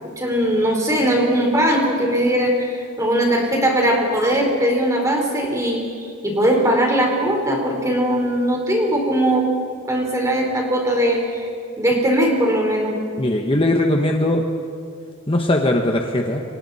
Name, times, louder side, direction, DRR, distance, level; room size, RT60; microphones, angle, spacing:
voice 1, 0.2-5.8 6.2-9.5 9.9-11.5 11.8-13.0, right 1 dB, 15° right, 0 dB, 4.1 m, -19 dB
voice 2, 13.2-14.4 15.3-16.4, left 1 dB, 25° left, 2 dB, 1.2 m, -19 dB
29.0 x 25.0 x 4.2 m, 2.5 s
head